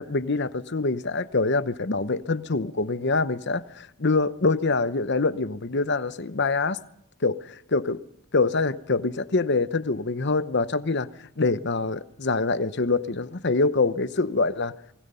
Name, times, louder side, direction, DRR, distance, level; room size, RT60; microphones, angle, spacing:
voice 1, 0.0-6.8 7.2-8.0 8.3-14.7, left 3 dB, 55° left, 0.9 m, -25 dB
28.5 x 20.5 x 5.6 m
head